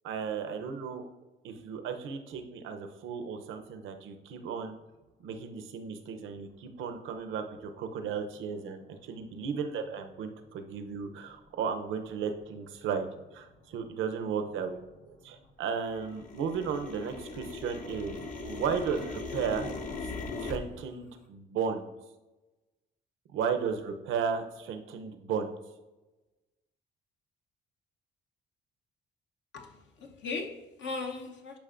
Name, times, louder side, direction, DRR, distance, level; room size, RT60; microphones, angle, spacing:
voice 1, 0.0-1.0 1.4-4.7 5.2-13.1 13.3-14.8 15.1-19.7 20.0-20.1 20.4-21.9 23.3-25.5, right 6 dB, 80° right, 7 dB, 0.7 m, -34 dB
sound 1, 10.5-10.6 11.2-11.5 11.9-12.0 12.3-12.8 13.1-15.4 15.7-20.6, left 3 dB, 40° left, 1.0 m, -40 dB
voice 2, 29.5-31.6, left 4 dB, 65° left, 3 dB, 0.9 m, -38 dB
10.5 x 5.1 x 2.5 m, 1.1 s
cardioid pair, 90°, 20 cm